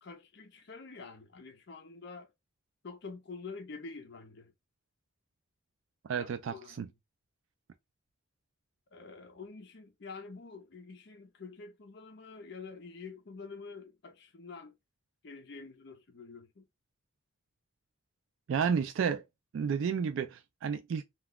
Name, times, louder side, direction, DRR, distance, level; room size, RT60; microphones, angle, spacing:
voice 1, 0.0-2.3 2.8-4.5 6.2-6.9 8.9-14.7 15.2-16.7, left 4 dB, 55° left, 0.5 m, -47 dB
voice 2, 6.1-6.9 18.5-19.2 19.5-21.0, right 6 dB, 70° right, 0.3 m, -31 dB
2.3 x 2.3 x 3.4 m
head